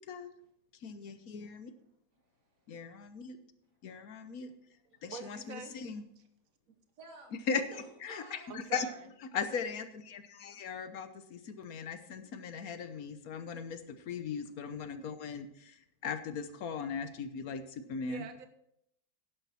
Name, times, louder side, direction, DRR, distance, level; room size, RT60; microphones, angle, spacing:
voice 1, 0.8-1.7 2.7-3.4 3.8-4.5 5.0-6.0 7.5-7.6 8.0-8.9 9.3-18.2, left 6 dB, 65° left, 10 dB, 1.4 m, -38 dB
voice 2, 2.1-3.2 3.7-4.3 4.9-5.0 7.0-7.3 7.7-8.5, right 2 dB, 85° right, -1 dB, 3.4 m, -55 dB
voice 3, 5.1-5.7 8.5-9.0 18.0-18.5, right 6 dB, 60° right, 8 dB, 1.5 m, -45 dB
11.5 x 10.5 x 4.3 m, 0.73 s
omnidirectional pair, 1.7 m